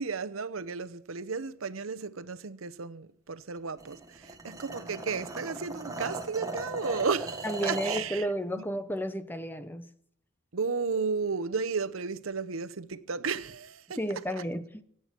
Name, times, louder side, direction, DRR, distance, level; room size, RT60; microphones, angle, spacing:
voice 1, 0.0-8.3 8.5-8.7 10.5-14.0 14.4-14.5, right 5 dB, 90° right, 0.8 m, -33 dB
sound 1, 3.8-8.1, right 2 dB, 15° right, 1.7 m, -37 dB
voice 2, 7.4-9.9 14.0-14.8, equal, 10° left, 0.8 m, -32 dB
24.5 x 8.9 x 6.0 m
head